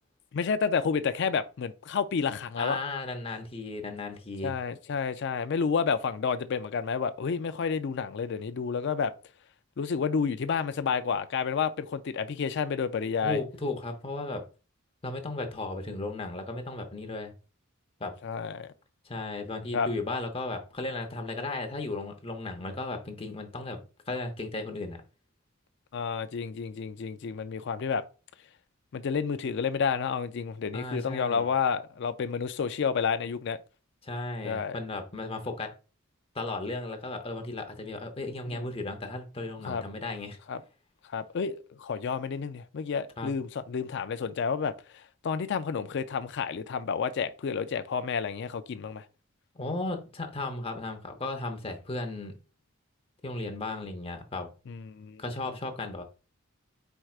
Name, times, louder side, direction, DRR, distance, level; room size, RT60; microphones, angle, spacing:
voice 1, 0.3-2.8 4.4-9.1 9.8-13.4 18.2-18.7 19.7-19.9 25.9-28.0 28.9-33.6 34.4-34.8 38.5-38.6 39.7-39.8 40.5-40.6 41.1-44.7 45.2-49.0 54.7-55.2, left 6 dB, 55° left, 0.4 m, -30 dB
voice 2, 2.6-4.5 13.2-14.4 15.0-17.3 18.0-18.1 19.1-23.8 24.1-25.0 30.7-31.5 34.0-35.7 36.3-40.4 43.2-43.3 49.5-52.4 53.2-54.5 55.2-56.0, left 2 dB, 25° left, 0.7 m, -35 dB
4.7 x 4.4 x 2.4 m
head